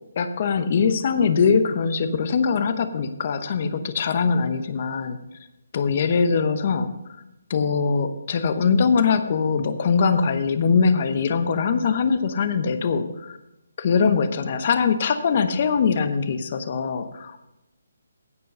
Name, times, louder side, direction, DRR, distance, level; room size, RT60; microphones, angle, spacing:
voice 1, 0.2-5.2 5.7-6.9 7.5-13.4 13.8-17.4, left 5 dB, 40° left, 10 dB, 0.9 m, -22 dB
16.0 x 5.4 x 5.5 m, 0.95 s
hypercardioid pair, 160°, 0 cm